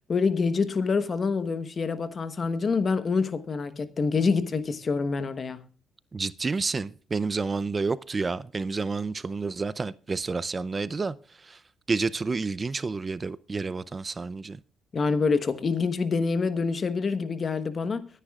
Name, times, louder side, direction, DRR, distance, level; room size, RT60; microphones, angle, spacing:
voice 1, 0.1-5.6 14.9-18.1, left 4 dB, 40° left, 1.1 m, -26 dB
voice 2, 6.1-11.2 11.4-11.6 11.9-14.6, right 4 dB, 30° right, 0.5 m, -29 dB
22.5 x 10.0 x 2.4 m
cardioid pair, 90°, 0 cm